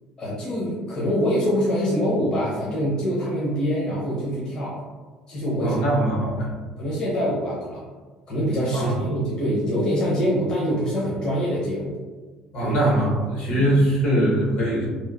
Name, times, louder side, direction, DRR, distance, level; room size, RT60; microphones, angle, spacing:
voice 1, 0.2-4.8 5.3-5.8 6.8-7.8 8.3-11.9 12.6-12.8 13.5-13.7, equal, 40° left, -6 dB, 0.7 m, -24 dB
voice 2, 5.6-6.5 8.7-8.9 12.5-14.9, right 1 dB, 70° left, -5 dB, 1.1 m, -22 dB
2.9 x 2.0 x 2.4 m, 1.4 s
cardioid pair, 120°, 2 cm